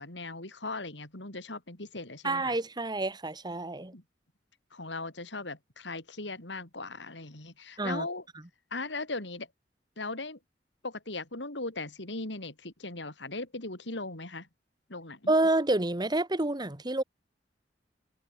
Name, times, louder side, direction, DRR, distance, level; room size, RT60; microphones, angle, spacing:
voice 1, 0.0-2.6 3.9-4.0 4.7-8.2 8.7-9.5 10.0-10.4 10.8-14.5 14.9-15.3, left 2 dB, 80° left, 4.6 m, -38 dB
voice 2, 2.2-3.9 7.8-8.1 15.3-17.0, right 2 dB, 25° right, 1.9 m, -28 dB
head